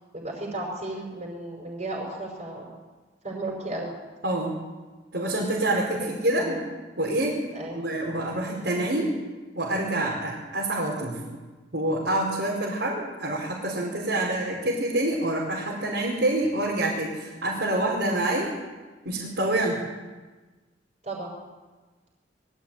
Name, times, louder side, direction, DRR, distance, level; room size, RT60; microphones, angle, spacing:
voice 1, 0.1-2.7 3.2-3.9 6.0-6.6 7.5-7.8 21.0-21.3, right 2 dB, 40° right, -2 dB, 5.2 m, -34 dB
voice 2, 4.2-4.5 5.1-6.6 7.0-7.4 7.7-9.1 9.5-11.2 11.7-18.5 19.0-19.8, right 1 dB, 70° right, -4 dB, 4.9 m, -26 dB
22.5 x 14.5 x 9.3 m, 1.3 s
head